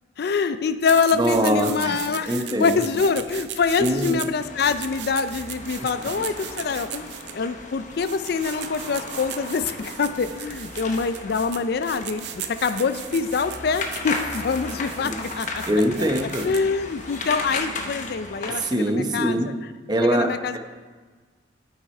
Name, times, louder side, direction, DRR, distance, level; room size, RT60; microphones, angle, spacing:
voice 1, 0.2-2.3 2.6-15.6 16.4-19.4 20.1-20.5, left 5 dB, 60° left, 11 dB, 0.4 m, -25 dB
sound 1, 0.8-17.5, right 11 dB, 65° right, 0.5 m, -38 dB
voice 2, 1.1-2.0 2.2-2.8 3.8-4.3 5.8-6.1 15.0-15.2 15.6-16.5 18.5-19.5 19.9-20.6, equal, 25° right, 4 dB, 0.9 m, -23 dB
sound 2, 4.3-18.7, left 3 dB, 45° left, 0.9 m, -36 dB
8.9 x 8.3 x 4.3 m, 1.4 s
head